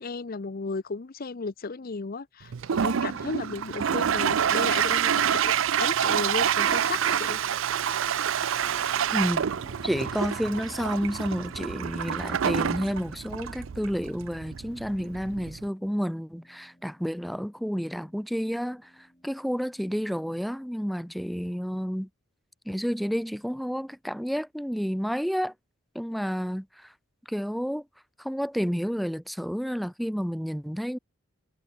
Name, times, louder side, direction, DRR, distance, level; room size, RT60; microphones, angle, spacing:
voice 1, 0.0-7.4, left 4 dB, 45° left, 0.6 m, -34 dB
Toilet flush, 2.5-15.6, right 8 dB, 65° right, 0.5 m, -27 dB
Keyboard (musical), 8.6-21.1, left 1 dB, 20° left, 5.0 m, -55 dB
voice 2, 9.1-9.5 9.8-18.9 19.2-22.1 22.7-25.5 25.9-26.9 27.3-27.8 28.2-31.0, equal, ahead, 0.7 m, -30 dB
head